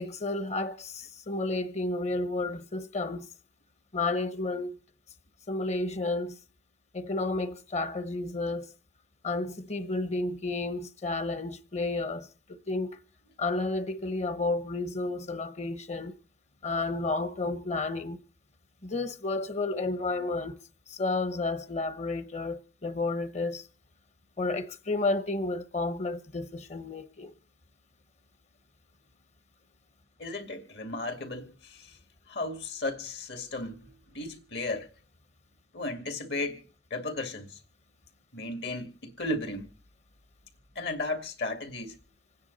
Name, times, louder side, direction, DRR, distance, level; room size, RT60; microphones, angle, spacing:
voice 1, 0.0-3.3 3.9-4.7 5.5-6.4 6.9-8.7 9.2-12.3 12.7-13.0 13.4-16.1 16.6-18.2 18.8-20.6 20.9-23.7 24.4-27.3, left 2 dB, 40° left, 0.9 m, -31 dB
voice 2, 30.2-32.0 32.3-34.9 35.7-36.6 36.9-37.6 38.3-39.7 40.8-41.9, left 2 dB, 70° left, 2.3 m, -35 dB
27.0 x 9.6 x 4.0 m
head